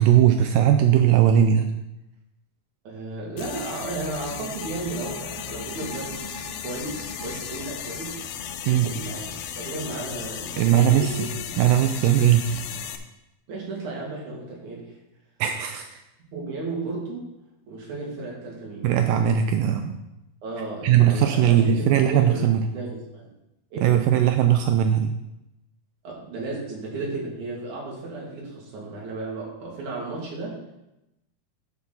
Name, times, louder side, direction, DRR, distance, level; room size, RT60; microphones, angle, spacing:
voice 1, 0.0-1.7 8.7-8.9 10.6-11.3 11.6-12.6 15.4-16.0 18.8-20.0 20.8-22.7 23.8-25.1, right 10 dB, 90° right, 6 dB, 1.9 m, -19 dB
voice 2, 2.9-8.2 8.6-11.6 13.5-15.0 16.3-17.3 17.7-18.9 20.4-22.5 22.7-23.3 23.7-24.0 26.0-30.6, right 2 dB, 55° right, -4 dB, 3.4 m, -34 dB
sound 1, 3.4-13.0, left 9 dB, 90° left, 2.6 m, -36 dB
sound 2, 4.2-9.3, right 1 dB, 70° right, 3.6 m, -42 dB
11.0 x 6.0 x 3.9 m, 0.90 s
omnidirectional pair, 4.5 m